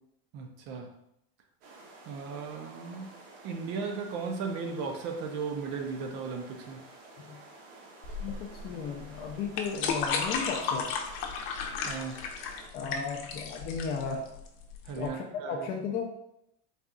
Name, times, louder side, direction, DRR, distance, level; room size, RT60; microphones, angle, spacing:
voice 1, 0.3-0.9 2.1-3.2 3.4-6.9 11.9-12.3 14.8-15.7, right 5 dB, 40° right, 4 dB, 0.4 m, -36 dB
sound 1, 1.6-12.7, right 2 dB, 80° right, 1.1 m, -52 dB
sound 2, 8.0-15.1, left 5 dB, 60° left, 0.7 m, -34 dB
voice 2, 8.2-10.9 12.7-14.3 15.0-16.0, left 5 dB, 30° left, 2 dB, 0.4 m, -35 dB
4.0 x 2.3 x 3.6 m, 0.78 s
supercardioid pair, 165°, 31 cm